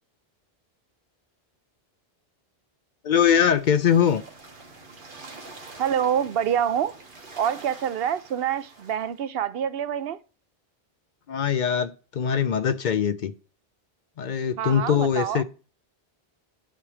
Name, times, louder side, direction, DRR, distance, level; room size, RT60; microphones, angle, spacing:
voice 1, 3.0-4.2 11.3-13.3 14.2-15.4, left 8 dB, 60° left, 0.6 m, -22 dB
sound 1, 3.1-9.2, right 3 dB, 55° right, 1.6 m, -46 dB
voice 2, 5.8-6.9 7.4-10.2 14.6-15.4, right 9 dB, 70° right, 0.8 m, -26 dB
9.1 x 3.3 x 6.0 m
omnidirectional pair, 1.0 m